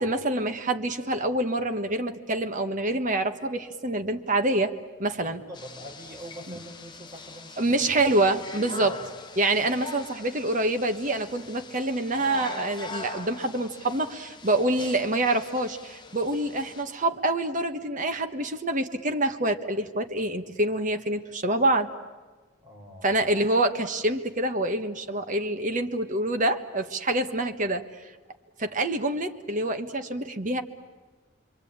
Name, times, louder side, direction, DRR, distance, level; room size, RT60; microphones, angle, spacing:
voice 1, 0.0-4.7 5.0-5.4 6.5-6.6 7.6-8.9 9.4-21.9 23.0-27.8 28.6-30.6, right 2 dB, 40° right, 6 dB, 1.4 m, -26 dB
voice 2, 5.2-8.0 8.8-9.0 9.6-9.7 22.6-23.1, equal, 20° right, -2 dB, 5.6 m, -44 dB
sound 1, 5.5-16.8, left 3 dB, 25° left, 1.0 m, -43 dB
28.0 x 23.0 x 8.8 m, 1.3 s
head